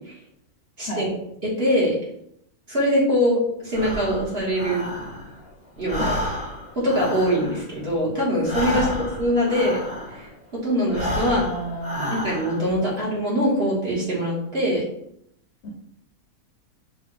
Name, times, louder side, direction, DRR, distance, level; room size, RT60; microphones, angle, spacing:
voice 1, 0.8-1.1 1.4-2.0 2.7-4.8 5.8-6.1 6.8-8.9 9.2-9.8 10.1-11.4 12.1-14.8, equal, 40° right, -6 dB, 1.9 m, -23 dB
Breathing, 3.7-5.5 5.8-10.4 10.8-12.8, left 1 dB, 5° right, 1.1 m, -31 dB
voice 2, 11.2-12.1 15.6-15.7, right 1 dB, 55° left, 0 dB, 0.9 m, -31 dB
6.2 x 2.6 x 3.3 m, 0.74 s
omnidirectional pair, 1.6 m